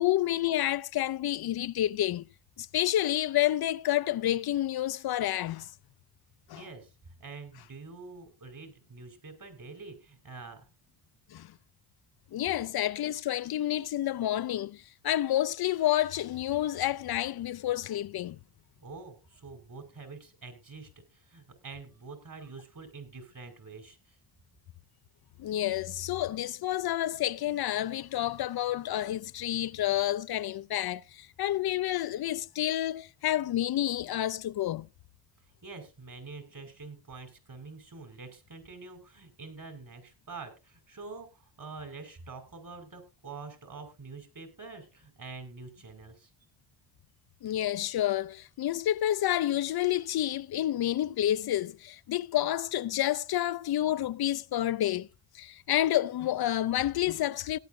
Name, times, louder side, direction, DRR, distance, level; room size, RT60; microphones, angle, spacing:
voice 1, 0.0-2.2 2.6-5.7 6.5-6.6 11.3-11.5 12.3-18.4 25.4-34.9 47.4-55.1 55.3-57.6, left 13 dB, 60° left, 0.5 m, -29 dB
voice 2, 6.5-6.9 7.2-10.6 18.8-24.2 35.6-46.3, right 4 dB, 50° right, 5.4 m, -46 dB
17.5 x 10.5 x 2.7 m
supercardioid pair, 55°, 42 cm